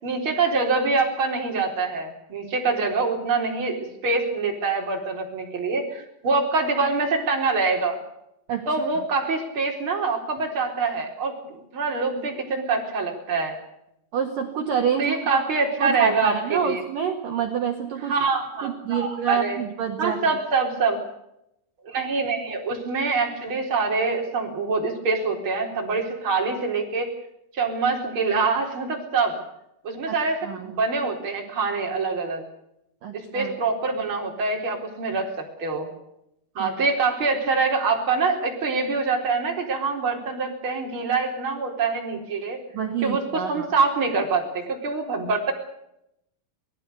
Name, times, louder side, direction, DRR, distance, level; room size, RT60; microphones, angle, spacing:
voice 1, 0.0-8.0 8.7-13.6 15.0-16.8 18.1-19.6 20.0-21.0 21.8-27.1 27.5-29.4 29.8-32.4 33.1-35.3 35.6-35.9 36.5-42.6 43.0-45.5, right 4 dB, 25° right, 0 dB, 4.3 m, -25 dB
voice 2, 14.1-15.4 15.8-18.1 18.6-20.2 30.1-30.7 33.0-33.6 36.6-36.7 42.7-43.7, right 7 dB, 60° right, 3 dB, 2.6 m, -27 dB
27.0 x 18.5 x 6.9 m, 0.81 s
omnidirectional pair, 5.9 m